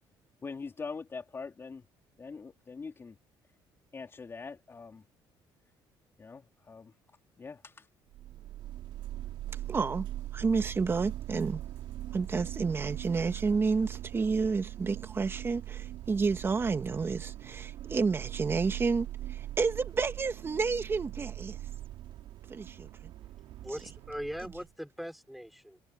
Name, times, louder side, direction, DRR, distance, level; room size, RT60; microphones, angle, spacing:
voice 1, 0.4-1.8 2.2-3.2 3.9-5.0 6.2-6.9 7.4-7.7, left 4 dB, 25° left, 3.7 m, -43 dB
sound 1, 8.1-24.7, right 13 dB, 80° right, 4.1 m, -41 dB
voice 2, 9.7-10.1 10.3-11.6 12.1-21.6 22.5-22.9, right 4 dB, 25° right, 1.8 m, -30 dB
voice 3, 23.2-25.8, equal, ahead, 4.6 m, -41 dB
cardioid pair, 120°, 9 cm